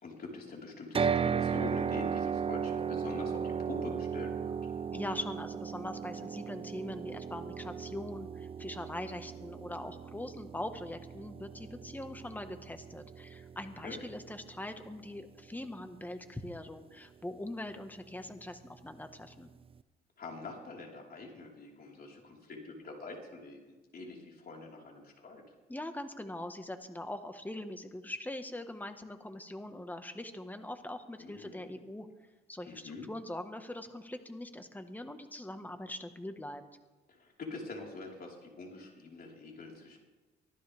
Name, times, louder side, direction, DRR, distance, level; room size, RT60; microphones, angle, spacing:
voice 1, 0.0-4.5 13.8-14.0 20.2-25.4 31.2-31.7 32.7-33.1 37.2-40.0, left 3 dB, 50° left, -1 dB, 4.5 m, -45 dB
sound 1, 0.9-15.1, right 7 dB, 30° right, 0.5 m, -36 dB
voice 2, 4.9-19.5 25.7-32.1 32.5-36.6, left 1 dB, 10° left, 7 dB, 1.5 m, -42 dB
24.0 x 14.5 x 3.6 m, 1.2 s
cardioid pair, 90°, 20 cm